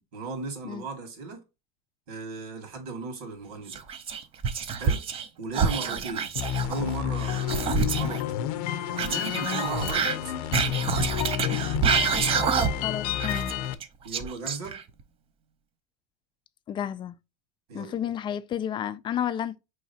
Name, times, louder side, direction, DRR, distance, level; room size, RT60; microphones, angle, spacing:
voice 1, 0.1-1.4 2.1-3.8 4.8-5.0 5.4-6.3 6.6-8.2 8.5-10.4 14.0-14.8 17.7-17.9, right 3 dB, 85° right, 1.8 m, -37 dB
Whispering, 3.7-5.3 5.5-8.2 8.9-12.9 13.2-15.0, right 6 dB, 30° right, 0.5 m, -28 dB
sound 1, 6.4-13.7, left 10 dB, 80° left, 0.6 m, -30 dB
voice 2, 12.8-13.5 16.7-17.2 17.7-19.6, left 9 dB, 25° left, 0.4 m, -31 dB
4.8 x 3.1 x 2.7 m
supercardioid pair, 140°, 19 cm